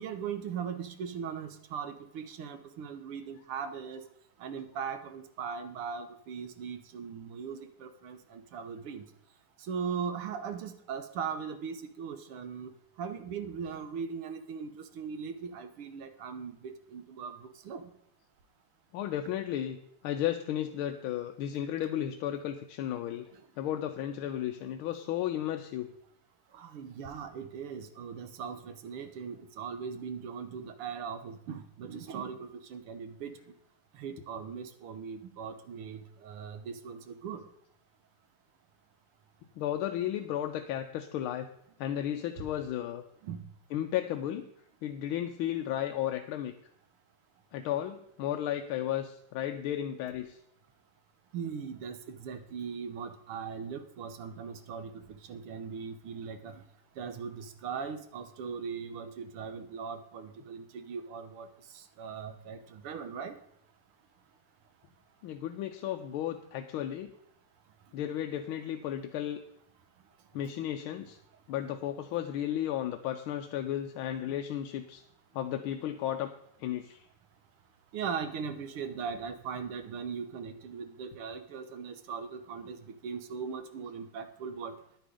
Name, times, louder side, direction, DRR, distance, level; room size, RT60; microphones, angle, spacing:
voice 1, 0.0-4.0 4.4-9.0 9.7-12.7 13.0-17.8 26.5-33.3 34.0-37.4 43.2-43.4 51.3-56.6 57.0-61.5 62.0-63.3 77.9-84.7, right 6 dB, 85° right, 9 dB, 1.9 m, -39 dB
voice 2, 18.9-19.8 20.0-23.3 23.6-25.9 34.2-34.3 39.6-41.5 41.8-43.0 43.7-44.5 44.8-46.5 47.5-50.4 65.2-67.1 67.9-69.4 70.3-71.2 71.5-75.0 75.3-76.3 76.6-77.0, left 11 dB, 80° left, 6 dB, 1.5 m, -34 dB
10.5 x 8.8 x 5.2 m, 0.73 s
omnidirectional pair, 2.4 m